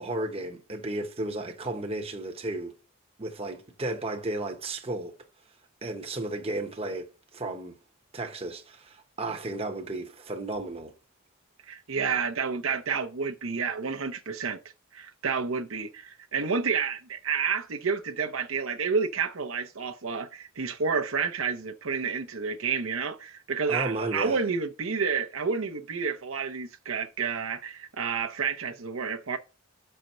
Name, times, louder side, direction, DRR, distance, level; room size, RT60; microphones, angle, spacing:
voice 1, 0.0-2.7 3.2-5.1 5.8-7.8 8.1-10.9 23.7-24.4, right 2 dB, 25° right, 0.9 m, -33 dB
voice 2, 11.7-14.6 14.9-29.4, right 5 dB, 65° right, 0.8 m, -30 dB
6.4 x 4.5 x 6.6 m
head